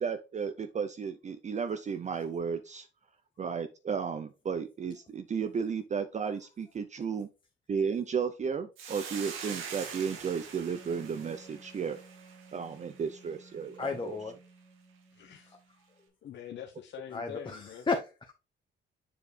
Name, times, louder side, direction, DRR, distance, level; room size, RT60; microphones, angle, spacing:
voice 1, 0.0-2.9 3.4-7.3 7.7-12.0 12.5-14.2, right 6 dB, 35° right, 0.6 m, -34 dB
Hiss, 8.8-13.3, right 6 dB, 90° right, 1.8 m, -44 dB
Wind instrument woodwind instrument, 10.7-16.1, right 3 dB, 10° left, 2.0 m, -56 dB
voice 2, 13.8-14.3 17.1-18.3, left 4 dB, 25° left, 0.9 m, -33 dB
voice 3, 15.1-15.6 16.2-17.9, left 9 dB, 65° left, 0.9 m, -44 dB
6.9 x 4.9 x 3.3 m
cardioid pair, 90°, 20 cm